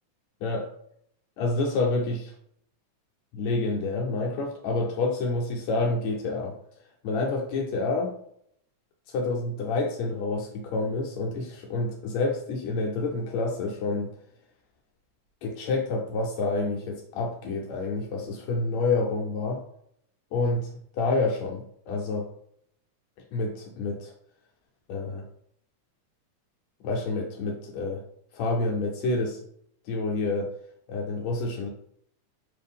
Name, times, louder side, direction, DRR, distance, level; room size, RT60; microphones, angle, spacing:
voice 1, 1.4-2.3 3.3-6.5 7.0-8.1 9.1-14.1 15.4-19.6 20.3-22.3 23.3-24.1 24.9-25.2 26.8-28.0 28.3-29.4 29.9-30.5 30.9-31.7, left 3 dB, 80° left, 0 dB, 1.7 m, -28 dB
4.8 x 2.5 x 3.5 m, 0.67 s
omnidirectional pair, 3.6 m